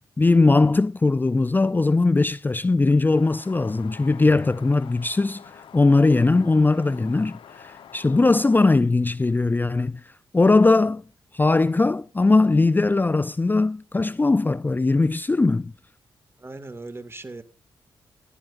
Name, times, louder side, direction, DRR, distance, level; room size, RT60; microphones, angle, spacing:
voice 1, 0.2-11.0 11.3-15.7, left 3 dB, 20° left, 0.5 m, -20 dB
sound 1, 3.1-8.7, left 8 dB, 70° left, 1.0 m, -46 dB
voice 2, 16.4-17.4, right 2 dB, 25° right, 2.0 m, -38 dB
18.0 x 12.0 x 2.6 m
supercardioid pair, 50°, 9 cm